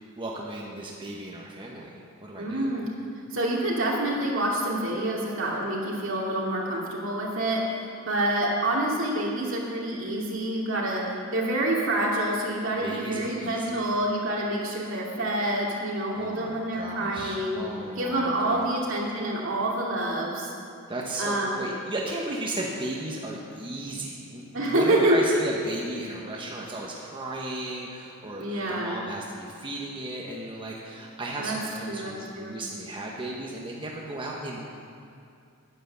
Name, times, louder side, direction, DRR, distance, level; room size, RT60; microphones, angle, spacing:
voice 1, 0.2-2.7 12.8-13.9 16.1-18.7 20.9-34.6, right 1 dB, 25° right, -3 dB, 1.1 m, -35 dB
voice 2, 2.4-2.9 3.3-17.6 18.0-20.5 21.2-21.6 24.5-25.2 28.4-29.0 31.4-31.6 31.9-32.5, right 1 dB, 65° right, -3 dB, 2.5 m, -27 dB
10.0 x 10.0 x 6.9 m, 2.5 s
head